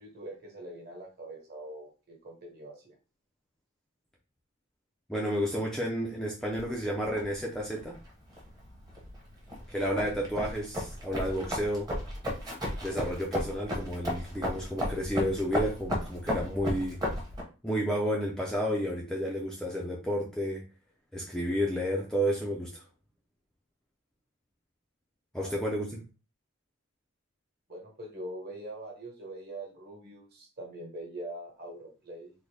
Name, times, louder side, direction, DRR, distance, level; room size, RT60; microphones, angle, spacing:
voice 1, 0.0-3.0 25.4-25.6 27.7-32.3, right 1 dB, 45° right, 0 dB, 1.2 m, -43 dB
voice 2, 5.1-8.0 9.7-11.9 12.8-17.0 17.6-20.6 21.1-22.8 25.3-26.0, equal, 5° left, -3 dB, 0.4 m, -31 dB
sound 1, 6.5-17.4, left 1 dB, 15° right, 0.8 m, -35 dB
3.8 x 2.1 x 3.3 m, 0.32 s
head